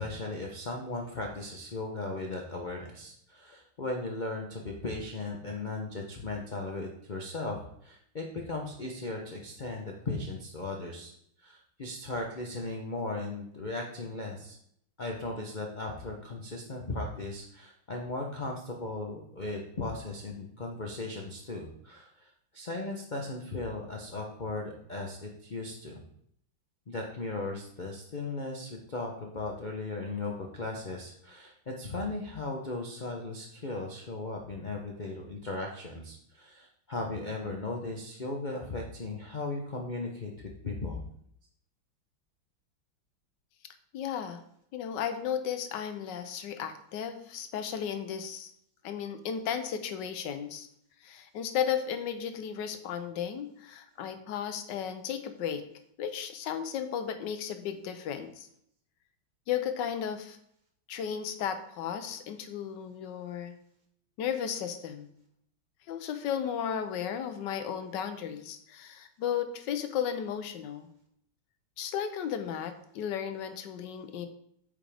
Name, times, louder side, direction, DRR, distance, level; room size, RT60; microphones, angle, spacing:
voice 1, 0.0-11.1 11.4-14.6 15.0-26.0 26.9-41.0, left 2 dB, 90° left, 0 dB, 0.4 m, -37 dB
voice 2, 43.9-44.4 44.7-48.5 48.8-50.7 51.0-55.6 56.0-58.5 59.5-60.4 60.9-63.6 64.2-65.1 65.9-70.9 71.8-74.3, left 8 dB, 70° left, 9 dB, 1.3 m, -34 dB
8.7 x 5.1 x 3.4 m, 0.70 s
omnidirectional pair, 2.2 m